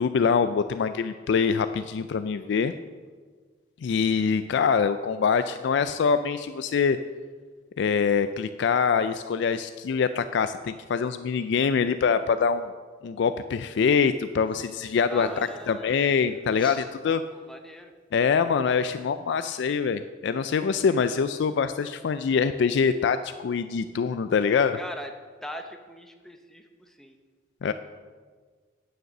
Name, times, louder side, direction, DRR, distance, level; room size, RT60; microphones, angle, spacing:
voice 1, 0.0-2.7 3.8-7.0 7.8-12.7 13.0-17.2 18.1-24.8 27.6-27.7, left 6 dB, 60° left, 11 dB, 0.3 m, -24 dB
sound 1, 14.5-14.8 15.1-15.7 16.5-16.8, left 1 dB, 25° left, 1.2 m, -42 dB
voice 2, 15.1-16.3 17.3-17.9 24.8-25.1 25.4-27.2 27.6-27.7, equal, ahead, 5 dB, 0.7 m, -41 dB
9.2 x 6.6 x 6.6 m, 1.5 s
head